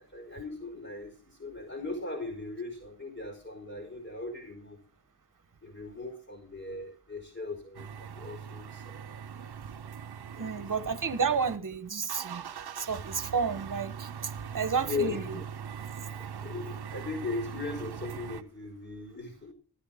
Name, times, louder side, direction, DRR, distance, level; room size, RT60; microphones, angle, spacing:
voice 1, 0.0-4.8 5.6-9.5 10.3-10.7 14.8-15.4 15.8-16.0 16.4-19.5, left 3 dB, 35° left, 4.7 m, -38 dB
sound 1, 7.7-11.6 11.9-18.4, right 7 dB, 75° right, 0.7 m, -41 dB
voice 2, 10.4-12.5 12.8-15.3, right 6 dB, 55° right, 1.1 m, -31 dB
14.5 x 12.5 x 3.6 m
cardioid pair, 45°, 38 cm